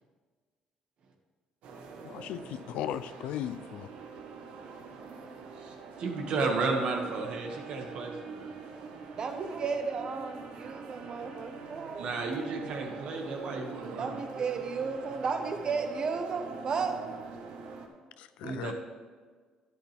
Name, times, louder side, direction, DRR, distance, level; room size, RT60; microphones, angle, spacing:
sound 1, 1.6-17.9, right 5 dB, 80° right, 1.5 m, -45 dB
voice 1, 2.0-3.9 18.2-18.7, left 11 dB, 80° left, 13 dB, 0.5 m, -37 dB
voice 2, 5.6-8.5 12.0-14.2 18.4-18.7, right 3 dB, 60° right, 2 dB, 2.0 m, -33 dB
voice 3, 8.7-12.2 13.3-17.3 17.6-18.0 18.4-18.6, right 5 dB, 40° right, 6 dB, 1.3 m, -35 dB
11.5 x 11.0 x 3.6 m, 1.5 s
cardioid pair, 125°, 2 cm